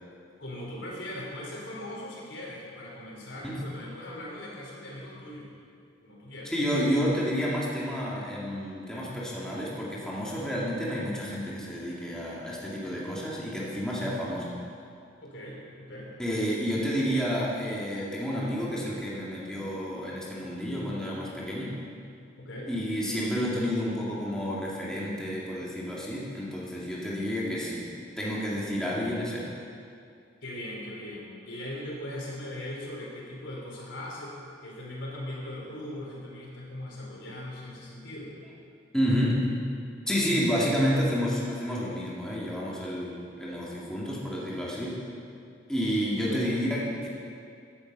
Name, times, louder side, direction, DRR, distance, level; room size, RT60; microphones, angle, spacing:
voice 1, 0.4-5.5 6.0-6.5 15.2-16.1 22.4-22.7 30.4-38.3 40.6-40.9 46.2-46.5, left 1 dB, 80° left, -3 dB, 3.8 m, -39 dB
voice 2, 6.4-14.5 16.2-21.8 22.7-27.9 28.2-29.5 38.9-39.5 40.1-45.0 45.7-47.1, equal, 5° left, -6 dB, 2.2 m, -30 dB
15.5 x 10.5 x 5.4 m, 2.4 s
head